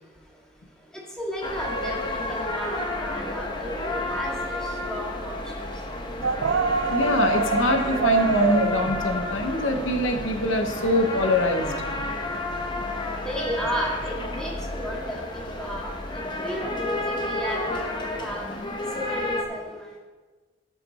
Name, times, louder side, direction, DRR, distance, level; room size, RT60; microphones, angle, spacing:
voice 1, 0.9-5.8 13.2-18.5 18.9-20.0, equal, 5° left, -3 dB, 1.8 m, -33 dB
sound 1, 1.4-19.4, left 2 dB, 25° left, 1.0 m, -31 dB
sound 2, 6.2-12.1, right 5 dB, 90° right, 0.5 m, -27 dB
voice 2, 6.9-11.7, left 2 dB, 85° left, 4 dB, 1.0 m, -24 dB
17.0 x 5.9 x 4.2 m, 1.3 s
head